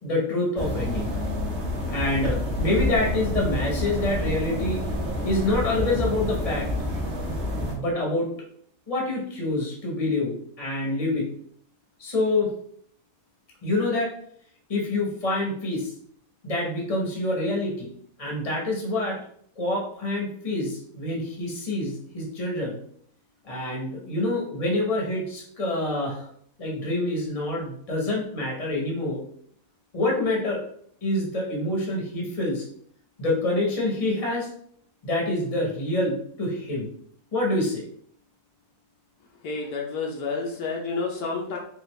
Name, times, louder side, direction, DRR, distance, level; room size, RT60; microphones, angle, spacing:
voice 1, 0.0-1.1 1.9-4.8 5.2-6.7 7.7-8.3 8.9-11.3 12.0-12.5 13.6-14.1 14.7-15.9 16.4-17.9 18.2-19.2 19.6-22.8 23.4-26.3 26.6-29.2 29.9-30.6 31.0-32.6 33.2-34.5 35.0-36.9 37.3-37.8, left 2 dB, 25° left, -1 dB, 1.0 m, -26 dB
sound 1, 0.6-7.7, left 1 dB, 55° right, 0.9 m, -28 dB
voice 2, 39.4-41.6, left 4 dB, 75° left, 0 dB, 1.2 m, -30 dB
4.1 x 2.6 x 3.1 m, 0.62 s
omnidirectional pair, 1.7 m